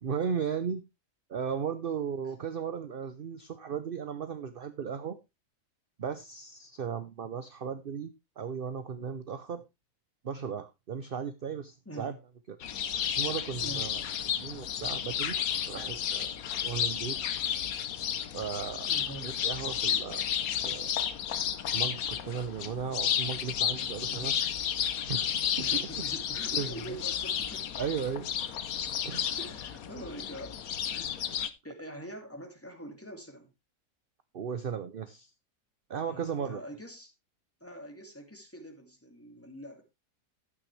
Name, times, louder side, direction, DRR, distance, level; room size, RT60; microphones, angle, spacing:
voice 1, 0.0-0.8 1.3-5.2 6.0-9.6 10.2-12.1 12.5-12.6 13.1-14.0 14.4-15.4 15.7-16.3 16.6-17.4 18.3-18.9 19.2-20.2 20.5-20.9 21.7-24.3 25.0-25.3 25.6-25.7 26.5-26.8 27.8-28.3 29.0-29.3 34.3-35.3 35.9-36.6, right 7 dB, 45° right, 11 dB, 0.8 m, -36 dB
sound 1, 12.6-31.5, left 9 dB, 65° left, 1.3 m, -32 dB
voice 2, 13.6-13.9 18.9-19.3 24.0-24.6 25.6-27.7 29.4-30.7 30.9-31.3 31.6-33.5 36.1-37.1 37.6-39.8, right 1 dB, 10° left, 3 dB, 2.5 m, -44 dB
12.0 x 8.8 x 3.2 m, 0.23 s
omnidirectional pair, 1.7 m